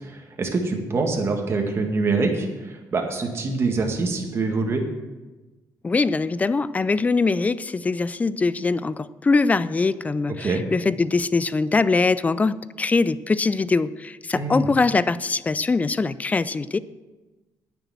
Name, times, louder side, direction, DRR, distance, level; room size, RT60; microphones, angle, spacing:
voice 1, 0.0-4.8 10.4-10.6 14.3-14.7, right 3 dB, 35° right, 2 dB, 1.9 m, -25 dB
voice 2, 5.8-16.8, left 3 dB, 20° left, 16 dB, 0.4 m, -22 dB
9.7 x 7.1 x 7.6 m, 1.2 s
cardioid pair, 110°, 7 cm